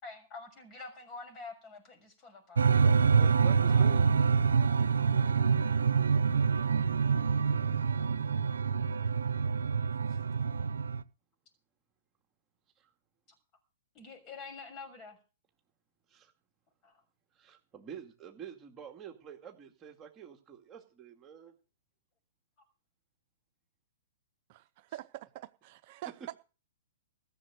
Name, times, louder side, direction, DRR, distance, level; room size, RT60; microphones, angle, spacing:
voice 1, 0.0-2.7 3.7-3.9 13.9-15.2 16.8-17.0, left 4 dB, 30° left, 4 dB, 6.5 m, -47 dB
sound 1, 2.6-11.0, right 5 dB, 85° right, 0.6 m, -26 dB
voice 2, 2.7-4.0 12.8-12.9 16.1-16.3 17.4-21.5, right 8 dB, 20° right, 2 dB, 2.2 m, -47 dB
voice 3, 24.5-26.3, right 14 dB, 45° right, 10 dB, 0.7 m, -45 dB
15.0 x 7.1 x 8.0 m, 0.36 s
hypercardioid pair, 135°, 0 cm